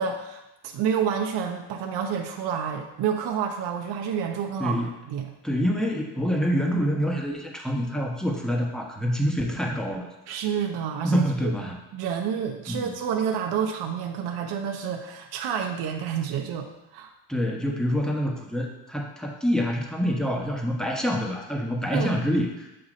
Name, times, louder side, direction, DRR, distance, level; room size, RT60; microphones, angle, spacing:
voice 1, 0.0-5.3 10.3-11.5 11.9-17.1 21.9-22.1, right 7 dB, 65° right, 3 dB, 0.7 m, -29 dB
voice 2, 5.4-10.1 11.0-11.8 12.7-12.9 17.3-22.8, equal, ahead, 0 dB, 1.0 m, -26 dB
7.6 x 2.7 x 5.0 m, 0.95 s
cardioid pair, 100°, 43 cm